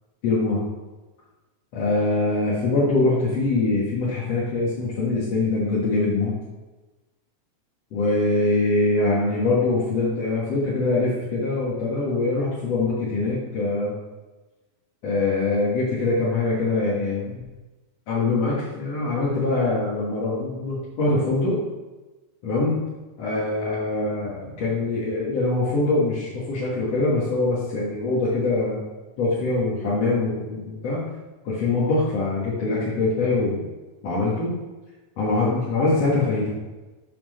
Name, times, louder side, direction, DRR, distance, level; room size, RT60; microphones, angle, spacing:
voice 1, 0.2-0.6 1.7-6.4 7.9-13.9 15.0-17.4 18.1-21.6 22.4-22.7 23.2-28.8 29.2-31.0 31.4-33.6 34.0-34.5 35.2-36.5, left 2 dB, 55° left, -7 dB, 1.9 m, -23 dB
7.3 x 4.3 x 6.4 m, 1.2 s
omnidirectional pair, 4.9 m